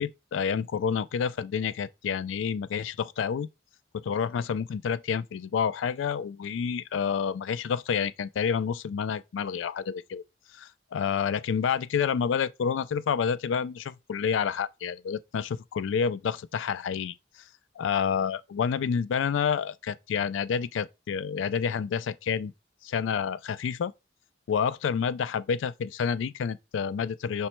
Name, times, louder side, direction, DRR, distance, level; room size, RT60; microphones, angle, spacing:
voice 1, 0.0-3.5 3.9-10.2 10.5-17.1 17.8-22.5 22.8-23.9 24.5-27.5, left 7 dB, 85° left, 0.3 m, -29 dB
5.4 x 2.1 x 4.3 m
head